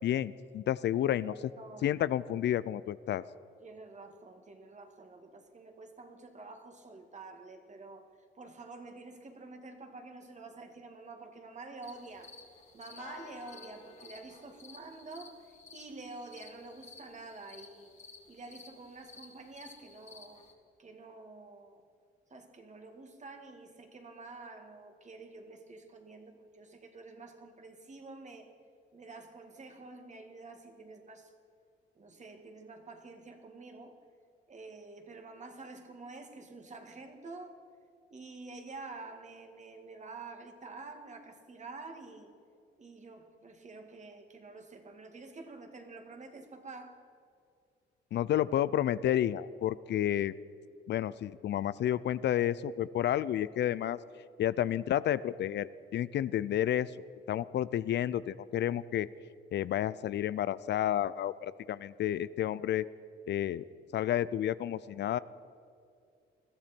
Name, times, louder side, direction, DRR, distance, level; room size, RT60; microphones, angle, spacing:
voice 1, 0.0-1.3 1.8-3.2 48.1-50.3 50.9-54.0 54.4-56.9 57.3-59.1 59.5-62.9 63.3-63.6 63.9-65.2, left 11 dB, 60° left, 17 dB, 0.5 m, -30 dB
voice 2, 1.0-2.0 3.6-8.1 8.3-12.3 12.7-17.9 18.3-20.4 20.8-21.8 22.3-28.5 28.9-31.3 32.0-33.9 34.5-37.6 38.1-42.3 42.8-47.0, right 3 dB, 35° right, 5 dB, 2.2 m, -48 dB
sound 1, 11.8-20.5, left 4 dB, 35° left, 2.5 m, -53 dB
21.0 x 14.0 x 4.4 m, 2.4 s
cardioid pair, 90°, 20 cm